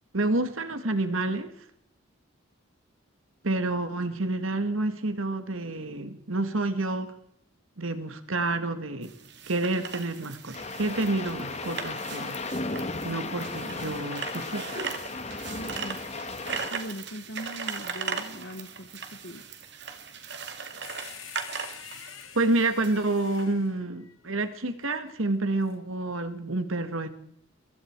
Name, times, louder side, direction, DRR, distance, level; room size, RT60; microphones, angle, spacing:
voice 1, 0.1-1.5 3.4-7.1 7.8-9.1 9.5-12.4 13.0-14.8 22.4-27.1, right 2 dB, 80° right, 9 dB, 1.9 m, -29 dB
sound 1, 9.0-23.4, right 5 dB, 55° right, 2.4 m, -39 dB
sound 2, 10.5-16.7, left 3 dB, 30° left, 1.6 m, -35 dB
voice 2, 15.5-16.0 16.7-19.4, equal, 55° left, 7 dB, 1.5 m, -40 dB
sound 3, 20.8-24.6 25.6-25.8, left 9 dB, 80° left, 2.7 m, -46 dB
24.5 x 22.5 x 4.7 m, 0.69 s
head